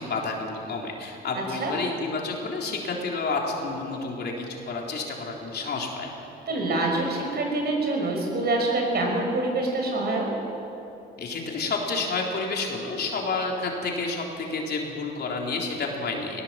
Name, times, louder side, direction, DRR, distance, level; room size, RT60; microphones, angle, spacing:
voice 1, 0.0-6.1 11.2-16.4, left 3 dB, 55° left, 0 dB, 3.6 m, -30 dB
voice 2, 1.3-1.7 6.5-10.3, right 2 dB, 55° right, 0 dB, 5.9 m, -26 dB
19.0 x 18.0 x 7.6 m, 3.0 s
cardioid pair, 90°, 20 cm